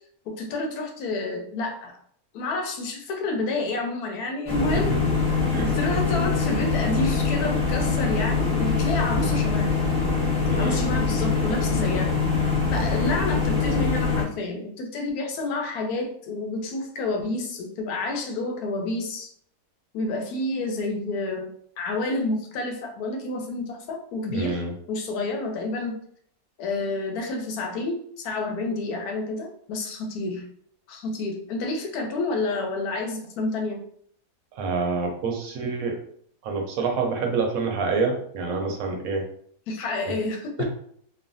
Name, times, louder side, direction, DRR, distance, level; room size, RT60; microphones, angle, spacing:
voice 1, 0.3-2.0 2.3-4.9 5.6-9.8 10.6-12.1 12.7-19.3 19.9-24.6 24.9-26.0 26.6-30.4 30.9-33.8 39.7-40.6, left 2 dB, 85° left, 3 dB, 1.1 m, -29 dB
sound 1, 4.5-14.2, left 4 dB, 5° left, 0.5 m, -23 dB
voice 2, 10.5-10.8 24.3-24.7 34.5-36.0 36.4-39.2 40.1-40.2 40.6-40.7, right 4 dB, 70° right, 3 dB, 1.0 m, -27 dB
3.1 x 2.1 x 2.5 m, 0.63 s
omnidirectional pair, 1.6 m